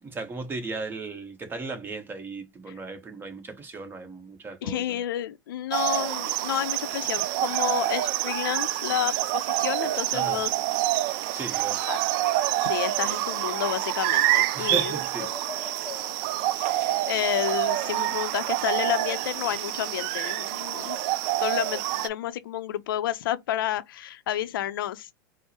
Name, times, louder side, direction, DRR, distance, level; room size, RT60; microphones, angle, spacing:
voice 1, 0.0-5.0 10.1-10.5 11.3-12.0 14.5-15.3, right 3 dB, 20° right, 1.0 m, -36 dB
voice 2, 4.6-10.5 11.3-12.0 12.6-15.0 16.5-21.0 21.4-25.1, left 12 dB, 80° left, 0.5 m, -30 dB
sound 1, 5.7-22.1, right 15 dB, 55° right, 0.4 m, -27 dB
sound 2, 13.2-14.4 15.0-16.6 17.2-18.5 19.8-20.0, left 6 dB, 20° left, 1.0 m, -45 dB
4.5 x 2.0 x 2.8 m
supercardioid pair, 125°, 11 cm